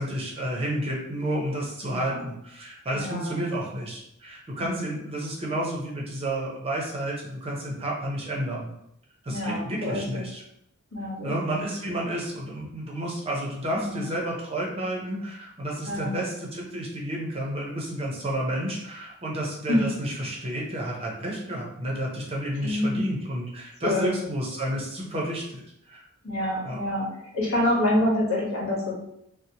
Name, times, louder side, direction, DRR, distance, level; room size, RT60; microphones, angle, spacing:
voice 1, 0.0-8.7 9.2-10.4 11.2-26.0 26.6-26.8, right 1 dB, 30° right, -3 dB, 0.6 m, -31 dB
voice 2, 1.8-2.2 2.9-3.4 4.6-5.0 9.3-10.3 10.9-11.4 13.7-14.0 15.8-16.1 19.7-19.8 22.6-23.0 23.8-24.3 26.2-29.0, left 1 dB, 80° left, -5 dB, 1.1 m, -27 dB
2.8 x 2.0 x 2.7 m, 0.75 s
head